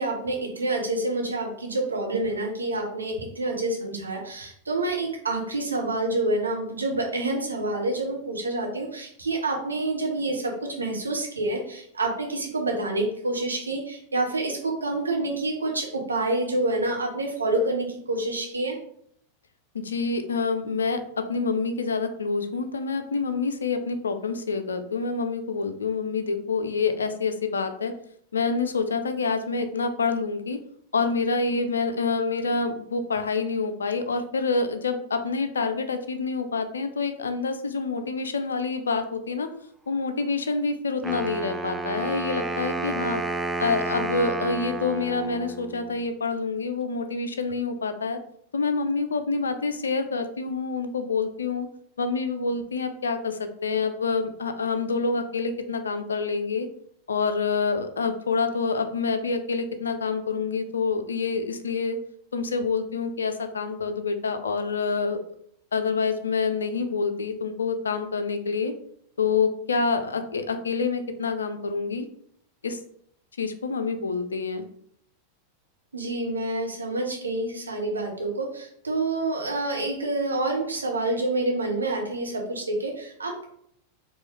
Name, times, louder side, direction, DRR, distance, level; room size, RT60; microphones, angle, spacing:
voice 1, 0.0-18.8 75.9-83.5, right 2 dB, 75° right, 0 dB, 1.0 m, -28 dB
voice 2, 19.7-27.9 28.3-30.6 30.9-39.5 39.9-43.2 43.6-48.2 48.5-51.7 52.0-56.7 57.1-62.0 62.3-65.2 65.7-68.7 69.2-72.1 72.6-72.8 73.4-74.6, left 4 dB, 70° left, 8 dB, 0.5 m, -27 dB
Wind instrument woodwind instrument, 41.0-46.0, right 3 dB, 10° right, 0.4 m, -31 dB
4.5 x 3.0 x 3.2 m, 0.66 s
figure-of-eight pair, 90°, 0 cm